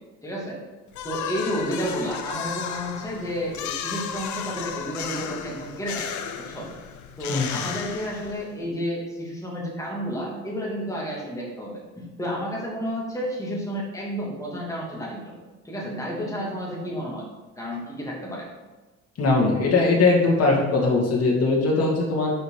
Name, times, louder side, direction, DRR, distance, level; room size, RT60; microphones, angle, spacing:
voice 1, 0.2-0.6 1.0-6.1 6.4-6.7 7.2-15.3 15.6-17.2 17.6-18.5, equal, 10° left, -4 dB, 2.8 m, -31 dB
sound 1, 0.9-8.6, left 8 dB, 75° left, 0.7 m, -34 dB
voice 2, 7.3-7.6 19.2-22.3, left 3 dB, 55° left, -3 dB, 2.4 m, -20 dB
6.7 x 5.2 x 5.1 m, 1.1 s
cardioid pair, 90°, 30 cm